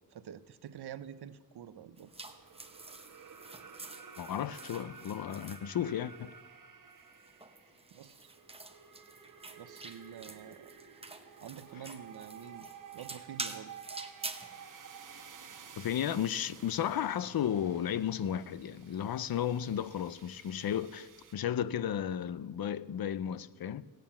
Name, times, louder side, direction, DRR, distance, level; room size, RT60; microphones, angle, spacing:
voice 1, 0.1-2.1 7.9-8.3 9.6-10.7 11.4-12.7 12.9-13.7, right 9 dB, 85° right, 0.7 m, -47 dB
sound 1, 2.0-6.3 7.0-14.6, right 3 dB, 15° right, 0.8 m, -47 dB
sound 2, 2.1-21.3, right 6 dB, 55° right, 1.1 m, -52 dB
voice 2, 4.2-6.3 15.8-23.8, left 9 dB, 65° left, 0.5 m, -34 dB
16.5 x 9.0 x 7.1 m
wide cardioid pair, 165°, 38 cm